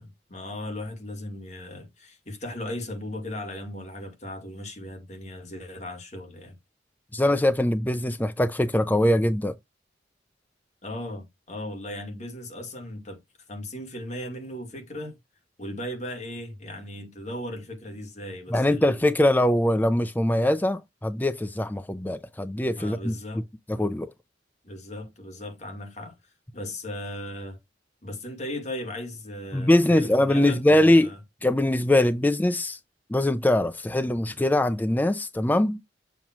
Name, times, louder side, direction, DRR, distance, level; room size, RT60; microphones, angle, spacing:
voice 1, 0.0-6.6 10.8-13.2 13.5-15.2 15.6-19.0 22.7-23.4 24.6-27.6 28.0-31.2, left 1 dB, 40° left, 2.2 m, -37 dB
voice 2, 7.1-9.5 18.5-23.1 23.7-24.1 29.5-31.1 31.4-32.8 33.1-35.8, left 1 dB, 10° left, 0.4 m, -22 dB
7.2 x 2.9 x 5.9 m
head